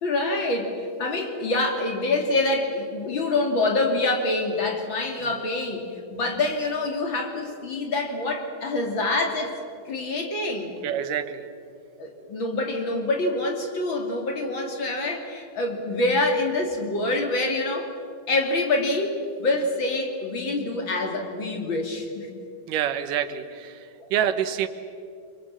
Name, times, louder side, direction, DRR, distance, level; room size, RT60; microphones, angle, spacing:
voice 1, 0.0-9.5 9.9-10.7 12.0-17.9 18.3-22.3, left 2 dB, 35° left, 3 dB, 3.2 m, -26 dB
voice 2, 10.8-11.5 22.7-24.7, right 9 dB, 70° right, 9 dB, 2.8 m, -27 dB
30.0 x 24.0 x 7.6 m, 2.5 s
omnidirectional pair, 4.0 m